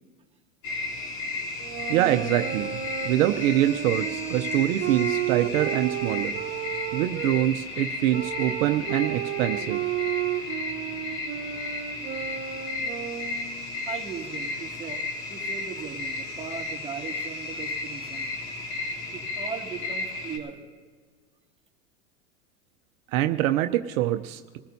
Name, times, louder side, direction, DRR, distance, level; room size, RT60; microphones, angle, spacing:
sound 1, 0.6-20.4, left 3 dB, 60° left, 3.5 m, -34 dB
sound 2, 1.6-7.4 8.1-13.6, right 11 dB, 35° right, 1.7 m, -32 dB
voice 1, 1.9-2.8 3.0-6.3 6.9-9.8 23.1-24.6, right 13 dB, 70° right, 7 dB, 0.8 m, -25 dB
voice 2, 13.9-18.3 19.1-20.6, right 6 dB, 15° right, -3 dB, 2.3 m, -38 dB
26.0 x 15.5 x 2.8 m, 1.4 s
supercardioid pair, 110°, 41 cm